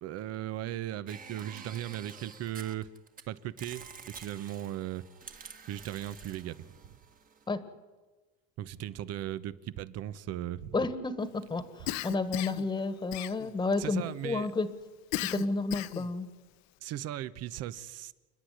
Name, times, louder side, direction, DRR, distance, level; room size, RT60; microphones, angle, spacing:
voice 1, 0.0-2.9 3.3-5.0 5.7-6.9 8.6-10.8 13.8-14.5 16.8-18.1, right 12 dB, 55° right, 16 dB, 1.0 m, -37 dB
sound 1, 1.1-3.2 3.6-7.5, right 5 dB, 25° right, 1.7 m, -49 dB
voice 2, 10.7-14.7 15.2-16.3, left 3 dB, 15° left, 12 dB, 1.5 m, -31 dB
Cough, 11.9-12.7 13.1-13.7 15.1-16.1, left 15 dB, 65° left, 0.9 m, -35 dB
29.5 x 10.0 x 9.5 m, 1.3 s
cardioid pair, 120°, 30 cm